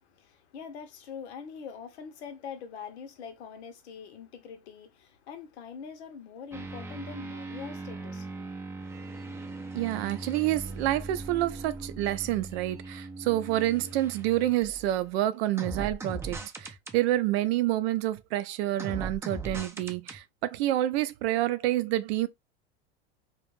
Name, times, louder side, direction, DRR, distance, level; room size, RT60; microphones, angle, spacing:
voice 1, 0.0-9.6, left 6 dB, 85° left, 0.8 m, -44 dB
sound 1, 6.5-15.0 15.6-17.0 18.8-20.2, right 3 dB, 10° right, 0.4 m, -39 dB
voice 2, 9.7-22.3, right 14 dB, 70° right, 0.5 m, -28 dB
2.3 x 2.1 x 3.0 m
supercardioid pair, 105°, 32 cm